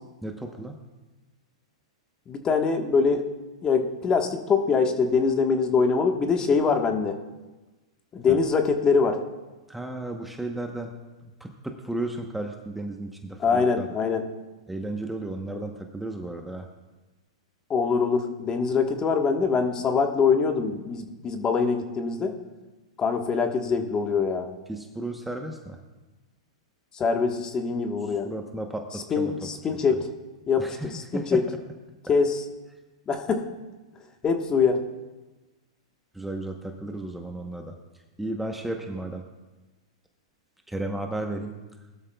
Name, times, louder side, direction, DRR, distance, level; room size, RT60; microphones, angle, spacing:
voice 1, 0.2-0.8 8.3-8.4 9.7-10.9 11.2-13.9 14.7-16.7 24.7-25.8 28.1-29.5 30.6-31.4 36.1-37.8 38.2-39.2 40.7-41.5, right 2 dB, 5° right, 3 dB, 1.0 m, -34 dB
voice 2, 2.3-3.2 3.6-7.2 8.1-9.2 13.4-14.2 17.7-22.3 23.0-24.5 26.9-28.3 29.1-30.1 30.5-31.4 32.1-32.4 33.1-33.4 34.2-34.8, left 5 dB, 25° left, 4 dB, 1.4 m, -23 dB
19.5 x 12.5 x 2.3 m, 1.2 s
hypercardioid pair, 120°, 3 cm